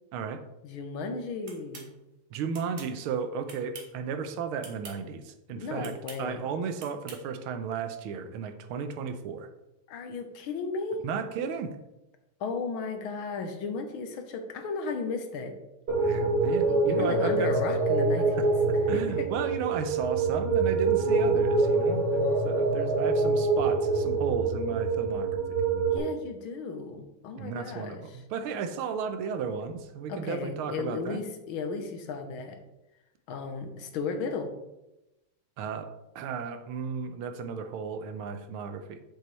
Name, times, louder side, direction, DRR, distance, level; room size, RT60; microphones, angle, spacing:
voice 1, 0.1-0.4 2.3-9.5 11.0-11.8 16.0-17.5 18.4-25.4 27.4-31.2 35.6-35.9 36.1-39.0, right 6 dB, 85° right, 8 dB, 1.6 m, -34 dB
voice 2, 0.6-1.9 5.6-6.4 9.9-11.0 12.4-15.5 16.7-18.3 18.9-19.3 25.9-28.0 30.1-32.6 33.3-34.5, left 4 dB, 75° left, 6 dB, 1.7 m, -34 dB
sound 1, 1.5-1.9 2.5-2.9 3.5-4.0 4.6-5.0 5.8-6.2 6.8-7.2, right 5 dB, 55° right, 1.7 m, -45 dB
sound 2, 15.9-26.0, right 3 dB, 30° right, 1.5 m, -25 dB
7.8 x 6.8 x 3.1 m, 0.95 s
omnidirectional pair, 2.3 m